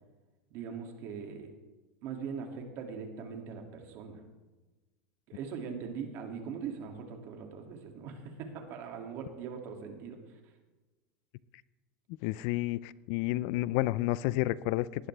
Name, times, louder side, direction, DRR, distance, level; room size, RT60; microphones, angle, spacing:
voice 1, 0.5-1.5 2.0-4.2 5.3-10.4, right 6 dB, 50° right, 3 dB, 2.5 m, -41 dB
voice 2, 12.2-15.1, left 17 dB, 60° left, 19 dB, 0.4 m, -30 dB
18.5 x 11.0 x 3.4 m, 1.2 s
supercardioid pair, 135°, 5 cm